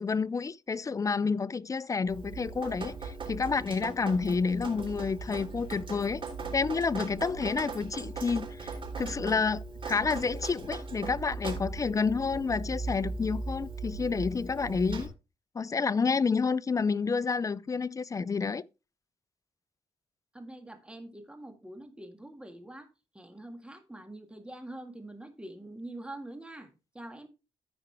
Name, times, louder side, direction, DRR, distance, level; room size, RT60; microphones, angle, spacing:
voice 1, 0.0-6.2 6.5-15.1 15.5-18.6, left 5 dB, 30° left, 0.4 m, -29 dB
Drip, 2.1-15.1, right 4 dB, 50° right, 3.6 m, -39 dB
voice 2, 20.3-22.9 23.1-26.7 26.9-27.3, right 1 dB, 10° right, 1.8 m, -45 dB
14.5 x 4.9 x 3.3 m
cardioid pair, 80°, 12 cm